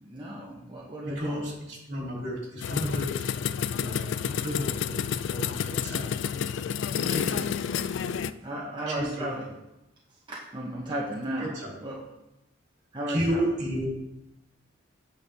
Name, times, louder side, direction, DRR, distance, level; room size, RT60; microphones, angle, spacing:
voice 1, 0.0-1.5 8.4-9.5 10.3-12.0 12.9-13.5, right 1 dB, 25° right, -4 dB, 0.8 m, -35 dB
voice 2, 1.1-3.1 3.7-6.1 7.1-7.5 8.9-9.5 11.4-11.7 13.1-13.9, equal, 60° right, -3 dB, 2.9 m, -32 dB
sound 1, 2.6-8.3, left 7 dB, 70° left, 0.3 m, -30 dB
8.4 x 6.2 x 3.4 m, 0.91 s
head